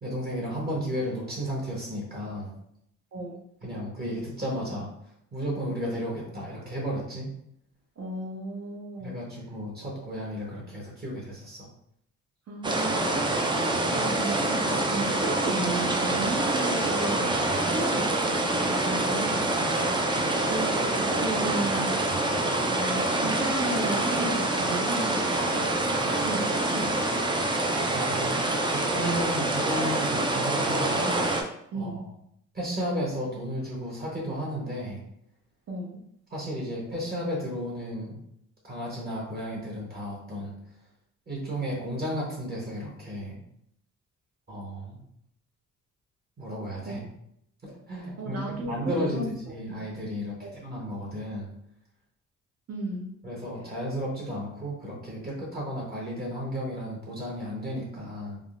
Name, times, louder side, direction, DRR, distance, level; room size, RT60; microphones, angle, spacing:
voice 1, 0.0-2.5 3.6-4.9 5.3-7.3 9.0-11.7 17.5-17.6 20.2-20.3 27.9-28.4 28.7-31.2 31.7-32.1 32.5-35.0 36.3-38.2 38.6-40.6 41.3-43.4 44.5-45.0 46.4-47.0 47.6-51.5 53.2-58.4, equal, 30° right, -3 dB, 1.0 m, -33 dB
voice 2, 3.1-3.4 8.0-9.2 12.5-13.2 13.9-17.4 17.7-20.0 20.5-21.9 22.7-25.6 26.2-27.0 31.7-32.1 35.7-36.0 46.8-47.0 48.2-49.3 50.4-50.6 52.7-53.2, right 2 dB, 55° right, -2 dB, 0.8 m, -34 dB
sound 1, 12.6-31.4, right 2 dB, 15° right, 0.4 m, -26 dB
3.6 x 2.1 x 2.4 m, 0.73 s
cardioid pair, 90°, 30 cm